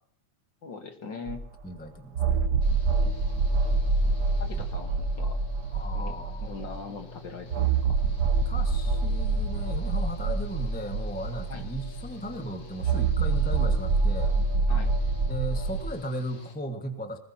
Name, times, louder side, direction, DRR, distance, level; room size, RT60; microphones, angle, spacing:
voice 1, 0.6-1.4 4.4-5.4 5.9-6.2 6.4-8.0 11.5-11.7 14.7-14.9, left 4 dB, 50° left, 6 dB, 1.6 m, -41 dB
sound 1, 1.3-1.4 2.1-6.7 7.5-12.2 12.8-15.9, right 4 dB, 75° right, 0.9 m, -26 dB
voice 2, 1.6-2.5 4.6-4.7 5.7-6.8 8.4-14.4 15.3-17.2, equal, 10° left, 5 dB, 0.6 m, -36 dB
Engine / Mechanical fan, 2.6-16.5, left 2 dB, 85° left, 4.2 m, -46 dB
20.0 x 20.0 x 2.9 m, 0.66 s
omnidirectional pair, 3.3 m